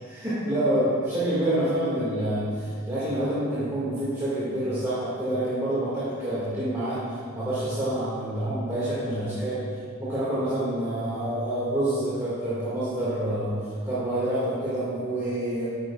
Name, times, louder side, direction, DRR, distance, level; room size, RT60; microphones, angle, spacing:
voice 1, 0.0-9.7 10.0-13.6 13.8-15.7, right 1 dB, 15° right, -12 dB, 2.2 m, -27 dB
12.5 x 9.2 x 2.5 m, 2.2 s
head